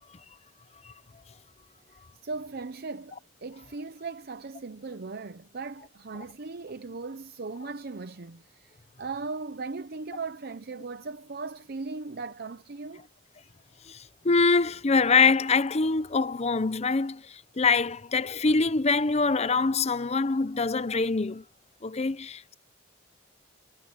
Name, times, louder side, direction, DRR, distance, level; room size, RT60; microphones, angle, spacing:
voice 1, 2.2-13.1, right 4 dB, 55° right, 0.7 m, -38 dB
voice 2, 13.9-21.4 21.8-22.5, left 4 dB, 35° left, 0.7 m, -24 dB
head